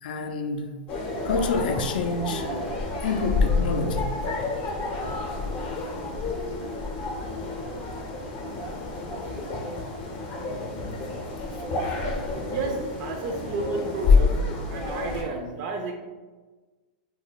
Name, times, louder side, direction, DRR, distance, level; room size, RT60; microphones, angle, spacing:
voice 1, 0.0-0.7 1.2-2.5 3.0-4.1 11.9-12.0, left 3 dB, 75° left, 7 dB, 0.3 m, -28 dB
sound 1, 0.9-15.2, left 3 dB, 35° left, 0.6 m, -28 dB
voice 2, 12.5-15.9, right 3 dB, 45° right, 2 dB, 0.3 m, -31 dB
2.2 x 2.2 x 3.9 m, 1.3 s
hypercardioid pair, 140°, 5 cm